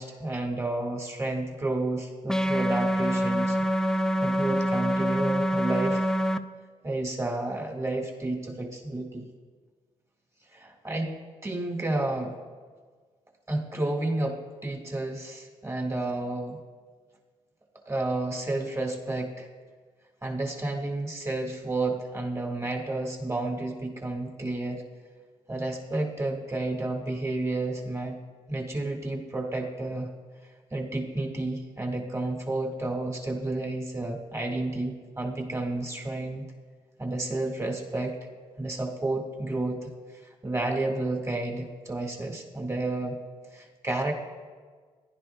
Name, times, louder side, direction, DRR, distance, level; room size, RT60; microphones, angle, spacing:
voice 1, 0.0-3.6 4.2-6.0 6.8-9.3 10.5-11.2 11.4-12.3 13.5-16.6 17.9-19.5 20.2-24.8 25.5-28.2 28.5-30.1 30.7-36.5 37.0-38.2 38.6-39.9 40.4-43.2 43.5-44.1, right 2 dB, 20° right, 2 dB, 1.9 m, -31 dB
sound 1, 2.3-6.4, equal, 5° left, 0.4 m, -25 dB
15.0 x 10.5 x 2.3 m, 1.5 s
supercardioid pair, 55°, 14 cm